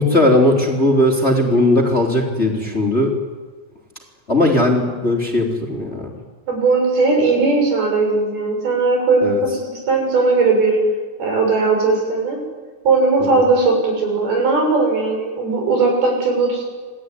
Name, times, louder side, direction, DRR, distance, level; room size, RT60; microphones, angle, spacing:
voice 1, 0.0-3.1 4.3-6.1 9.2-9.4, left 1 dB, 20° left, 0 dB, 3.4 m, -17 dB
voice 2, 6.5-9.6 9.9-10.8 11.2-12.4 12.9-16.6, right 3 dB, 80° right, 1 dB, 9.0 m, -18 dB
29.0 x 19.0 x 9.9 m, 1.5 s
omnidirectional pair, 4.3 m